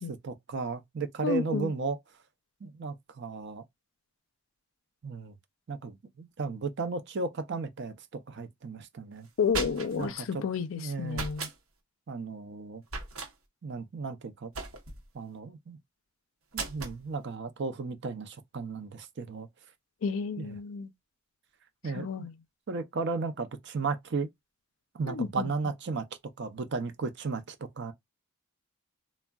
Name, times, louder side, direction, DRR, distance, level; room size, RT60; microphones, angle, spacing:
voice 1, 0.1-2.0 2.6-3.6 5.0-5.3 5.7-9.3 9.9-10.4 10.7-11.3 12.1-12.8 13.6-14.5 15.1-15.8 16.5-19.5 20.4-20.6 21.8-22.1 22.7-24.3 24.9-26.1 26.4-27.9, right 4 dB, 55° right, 0.5 m, -35 dB
voice 2, 1.2-1.7 9.4-11.5 20.0-20.9 21.9-22.3 25.1-25.5, left 5 dB, 65° left, 0.4 m, -31 dB
sound 1, 9.2-10.1 11.1-11.6 12.9-13.3 14.5-15.1 16.5-17.0, right 3 dB, 80° right, 0.9 m, -36 dB
3.5 x 2.1 x 2.2 m
head